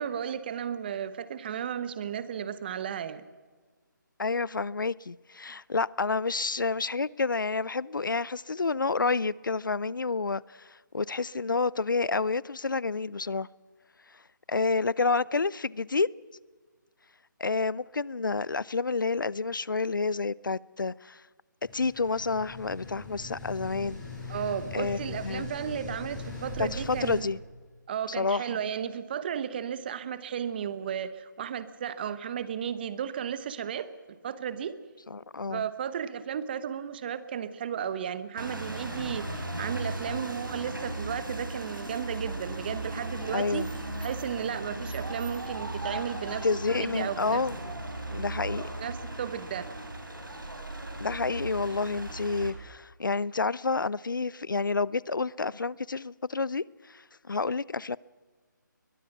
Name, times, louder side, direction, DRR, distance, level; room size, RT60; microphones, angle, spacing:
voice 1, 0.0-3.2 24.3-27.3 27.9-34.8 35.5-43.7 44.0-47.7 48.6-49.7, right 8 dB, 30° right, 1.0 m, -34 dB
voice 2, 4.2-13.5 14.5-16.1 17.4-21.2 21.7-24.0 24.7-25.0 25.2-25.5 26.6-27.4 28.1-28.6 35.1-35.7 43.3-43.7 46.4-47.6 48.1-48.7 51.0-58.0, left 4 dB, 75° left, 0.5 m, -29 dB
sound 1, 21.6-27.2, left 3 dB, 5° left, 7.7 m, -40 dB
sound 2, 38.4-52.5, right 2 dB, 85° right, 4.8 m, -37 dB
22.0 x 21.5 x 6.0 m
figure-of-eight pair, 155°, 11 cm